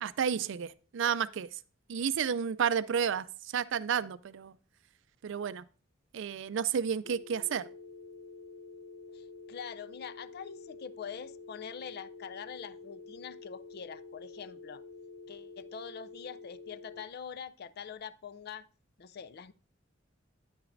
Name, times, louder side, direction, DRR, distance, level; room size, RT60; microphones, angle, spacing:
voice 1, 0.0-1.6 1.9-4.6 5.2-5.6 6.1-7.7, right 7 dB, 65° right, 0.4 m, -31 dB
sound 1, 7.0-17.1, left 3 dB, 90° left, 0.8 m, -49 dB
voice 2, 9.1-14.8 15.3-18.7 19.0-19.5, left 7 dB, 50° left, 0.4 m, -44 dB
9.5 x 8.9 x 2.6 m
head